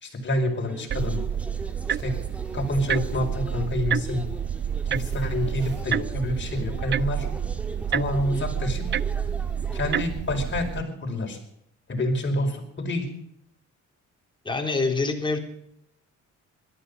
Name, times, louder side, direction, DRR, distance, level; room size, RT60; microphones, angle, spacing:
voice 1, 0.0-1.2 2.0-2.1 2.5-4.3 4.9-7.3 7.9-9.0 9.7-11.4 11.9-13.1, left 1 dB, 40° left, 2 dB, 5.1 m, -27 dB
sound 1, 0.6-10.0, equal, 5° right, 1.9 m, -42 dB
sound 2, 0.9-10.8, right 9 dB, 40° right, 0.5 m, -29 dB
voice 2, 14.5-15.4, left 3 dB, 15° left, 2 dB, 3.5 m, -25 dB
17.5 x 13.0 x 5.4 m, 0.74 s
cardioid pair, 90°, 30 cm